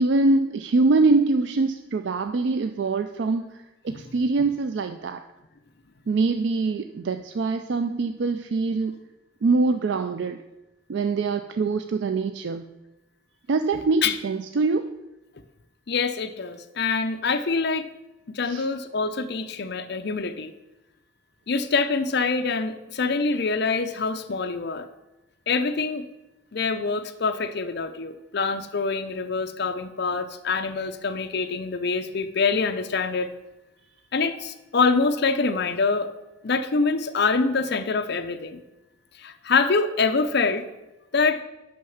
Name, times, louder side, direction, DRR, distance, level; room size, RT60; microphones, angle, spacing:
voice 1, 0.0-3.5 3.8-5.2 6.1-8.9 9.4-10.4 10.9-12.6 13.5-14.9 18.5-18.6, right 3 dB, 55° right, 8 dB, 0.4 m, -23 dB
voice 2, 15.9-17.9 18.3-20.5 21.5-24.9 25.5-26.1 26.5-33.3 34.1-36.1 36.4-38.6 39.2-40.7 41.1-41.4, left 4 dB, 50° left, 9 dB, 0.6 m, -25 dB
6.4 x 5.7 x 7.0 m, 1.0 s
head